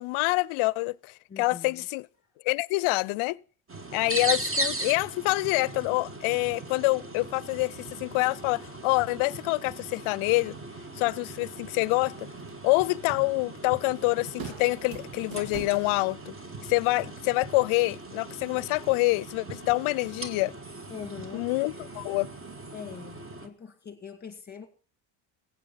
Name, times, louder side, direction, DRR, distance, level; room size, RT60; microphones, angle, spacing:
voice 1, 0.0-2.0 2.4-3.4 3.9-10.5 11.0-12.2 12.6-16.3 16.7-20.5 21.3-22.3, left 24 dB, 75° left, 0.5 m, -26 dB
voice 2, 1.3-1.9 20.9-21.7 22.7-24.7, left 7 dB, 20° left, 2.2 m, -43 dB
sound 1, 3.7-23.5, right 2 dB, 25° right, 1.8 m, -38 dB
sound 2, 12.2-22.8, right 6 dB, 70° right, 1.8 m, -49 dB
16.0 x 8.3 x 5.6 m
supercardioid pair, 80°, 50 cm